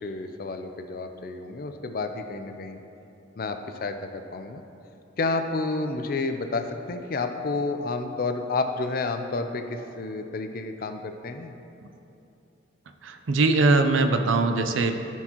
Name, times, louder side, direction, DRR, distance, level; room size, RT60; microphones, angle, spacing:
voice 1, 0.0-2.8 3.4-4.6 5.2-11.5, left 3 dB, 45° left, 7 dB, 0.4 m, -30 dB
voice 2, 13.0-14.9, right 3 dB, 75° right, 7 dB, 0.5 m, -21 dB
13.5 x 4.5 x 2.9 m, 2.9 s
head